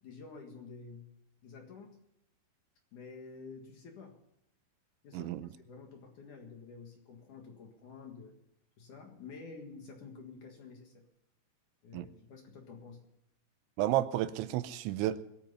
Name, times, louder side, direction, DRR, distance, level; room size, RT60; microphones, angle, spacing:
voice 1, 0.0-2.0 2.9-4.2 5.0-8.3 8.8-11.0 11.8-13.1, left 4 dB, 55° left, 3 dB, 2.6 m, -50 dB
voice 2, 5.1-5.5 11.9-12.1 13.8-15.2, right 13 dB, 85° right, 14 dB, 3.1 m, -32 dB
22.5 x 8.9 x 5.6 m, 0.82 s
omnidirectional pair, 5.2 m